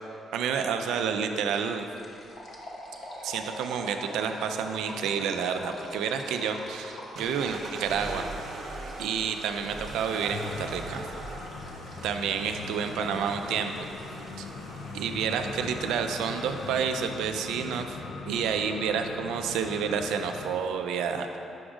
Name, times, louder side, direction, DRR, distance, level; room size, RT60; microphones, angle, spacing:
voice 1, 0.3-1.9 3.2-8.3 9.0-11.0 12.0-13.9 14.4-14.5 14.9-17.9 18.3-21.4, right 6 dB, 85° right, 6 dB, 0.4 m, -29 dB
sound 1, 1.0-1.2 1.5-14.3, equal, 55° left, 1.1 m, -45 dB
sound 2, 7.2-17.4, right 2 dB, 65° right, 0.8 m, -42 dB
sound 3, 10.3-20.6, left 4 dB, 85° left, 0.4 m, -41 dB
6.1 x 4.9 x 3.7 m, 2.8 s
cardioid pair, 90°, 0 cm